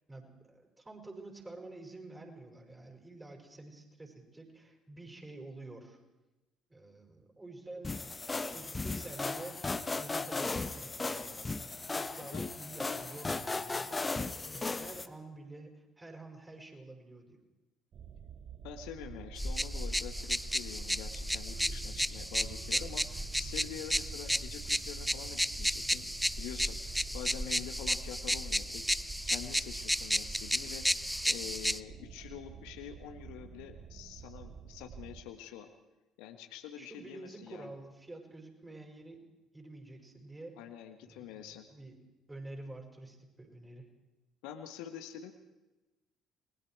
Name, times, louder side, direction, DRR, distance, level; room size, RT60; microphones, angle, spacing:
voice 1, 0.1-6.0 6.7-8.0 8.4-9.6 10.0-11.6 11.9-17.4 36.8-39.2 39.5-40.6 41.0-42.0 42.3-43.9, right 2 dB, 15° right, 2 dB, 6.1 m, -49 dB
sound 1, 7.8-15.1, left 3 dB, 25° left, 1.3 m, -36 dB
voice 2, 12.2-12.5 18.6-28.8 29.2-30.8 31.3-35.7 36.2-37.7 40.6-41.7 44.4-45.3, left 10 dB, 65° left, 6 dB, 1.5 m, -46 dB
sound 2, 17.9-35.2, right 8 dB, 50° right, 1.2 m, -49 dB
sound 3, 19.4-31.8, equal, ahead, 0.6 m, -33 dB
28.0 x 21.0 x 4.7 m, 1.0 s
figure-of-eight pair, 50°, 0 cm